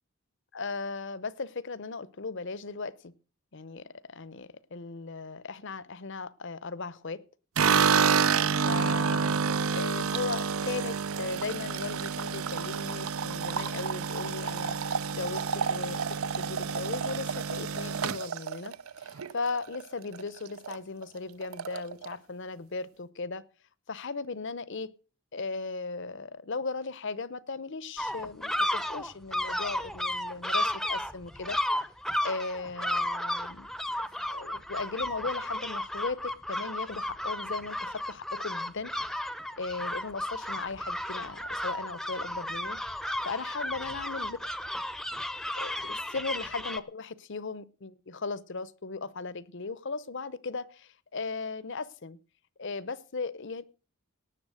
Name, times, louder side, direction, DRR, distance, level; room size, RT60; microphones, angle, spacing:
voice 1, 0.5-3.1 3.5-7.2 7.6-7.9 8.6-9.4 9.7-14.8 15.1-23.4 23.9-24.9 25.3-31.6 32.2-33.7 34.3-38.9 39.6-42.8 43.2-44.4 45.6-52.2 52.6-53.6, left 4 dB, 55° left, 0.8 m, -37 dB
sound 1, 7.6-19.8 20.1-20.8 21.0-21.1 21.4-22.1, right 6 dB, 75° right, 0.6 m, -29 dB
sound 2, 28.0-46.8, left 1 dB, ahead, 0.7 m, -33 dB
18.5 x 7.2 x 6.4 m
head